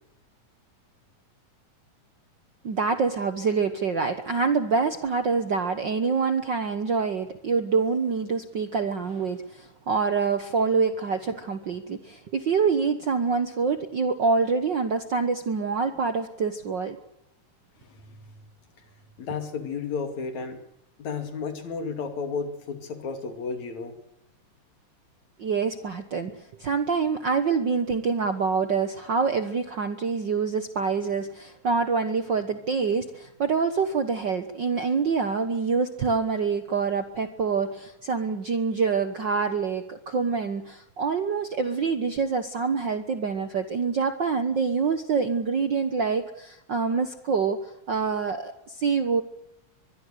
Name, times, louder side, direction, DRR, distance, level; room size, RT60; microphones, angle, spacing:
voice 1, 2.6-17.0 25.4-49.2, right 5 dB, 55° right, 9 dB, 1.4 m, -26 dB
voice 2, 17.8-18.4 19.2-20.6 21.0-24.0, left 5 dB, 65° left, 7 dB, 3.8 m, -33 dB
24.0 x 21.5 x 6.7 m, 0.83 s
omnidirectional pair, 3.5 m